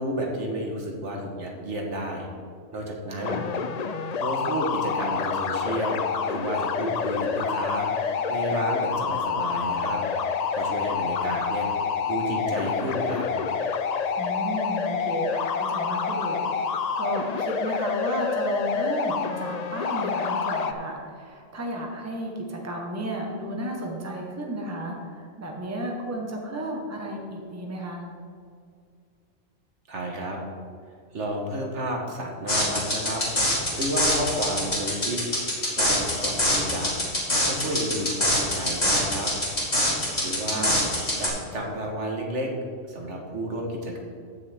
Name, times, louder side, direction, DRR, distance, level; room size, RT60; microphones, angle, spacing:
voice 1, 0.0-2.3 2.7-3.4 4.1-10.0 10.5-11.7 12.1-13.3 29.9-30.4 31.1-35.2 35.8-36.9 37.5-39.3 40.2-40.8 41.2-42.5 42.9-44.0, right 1 dB, 65° right, 0 dB, 1.7 m, -31 dB
sound 1, 3.2-20.7, left 6 dB, 80° left, 0.3 m, -28 dB
voice 2, 3.2-3.6 14.2-28.0 40.5-40.9, right 1 dB, 15° right, 0 dB, 1.1 m, -33 dB
sound 2, 32.5-41.3, left 1 dB, 30° left, 2.5 m, -25 dB
15.0 x 6.5 x 3.6 m, 2.2 s
omnidirectional pair, 1.3 m